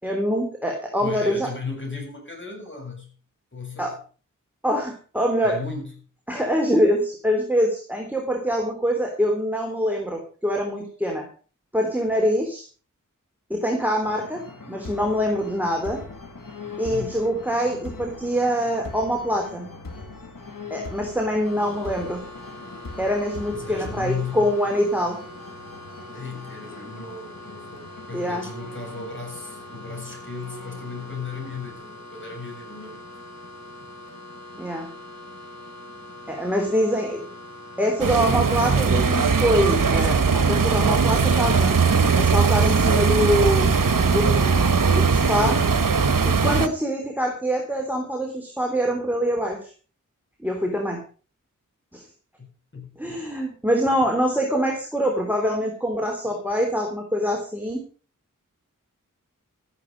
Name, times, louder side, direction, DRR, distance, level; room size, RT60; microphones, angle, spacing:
voice 1, 0.0-1.5 3.8-3.9 4.6-5.5 6.3-11.2 11.7-12.6 13.5-14.4 14.7-16.0 16.8-19.7 20.7-22.2 23.0-25.2 28.1-28.4 34.6-34.9 36.3-37.2 37.8-40.2 40.5-41.7 42.1-43.7 44.1-45.6 46.2-49.7 50.4-51.0 51.9-52.0 53.0-57.8, equal, 5° right, 1 dB, 3.4 m, -24 dB
voice 2, 1.0-3.1 3.5-4.0 5.4-5.9 16.9-17.3 23.5-24.5 26.1-33.1 52.4-53.2, left 4 dB, 35° left, 1 dB, 7.5 m, -36 dB
The Corrupted Gates, 14.0-31.7, left 3 dB, 90° left, 2.3 m, -41 dB
electrical box, 21.4-40.4, left 1 dB, 55° left, 5.4 m, -42 dB
sound 1, 38.0-46.7, right 5 dB, 80° right, 1.1 m, -19 dB
13.5 x 11.0 x 5.3 m, 0.40 s
wide cardioid pair, 55°, 32 cm